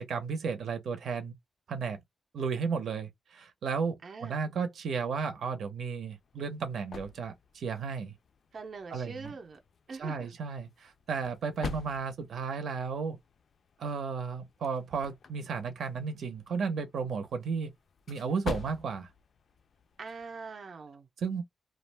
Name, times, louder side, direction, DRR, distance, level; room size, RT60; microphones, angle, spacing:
voice 1, 0.0-1.3 1.7-2.0 2.3-8.1 8.9-9.3 10.0-13.2 13.8-17.7 18.1-19.1 21.2-21.4, right 5 dB, 90° right, 0.7 m, -34 dB
voice 2, 4.0-4.4 8.5-9.6 9.9-10.3 20.0-21.1, right 4 dB, 50° right, 0.5 m, -43 dB
sound 1, 6.0-20.5, left 5 dB, 60° left, 0.4 m, -47 dB
2.3 x 2.1 x 3.2 m
wide cardioid pair, 130°, 0 cm